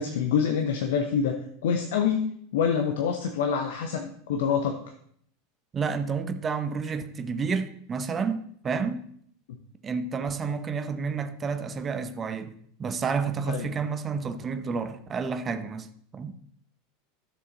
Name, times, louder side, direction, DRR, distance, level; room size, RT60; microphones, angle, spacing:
voice 1, 0.0-2.2 2.5-4.8 13.5-13.7, left 7 dB, 65° left, 0.9 m, -26 dB
voice 2, 5.7-9.0 9.8-15.9 16.1-16.3, right 5 dB, 25° right, 0.9 m, -30 dB
12.5 x 6.7 x 4.0 m
figure-of-eight pair, 85°, 0 cm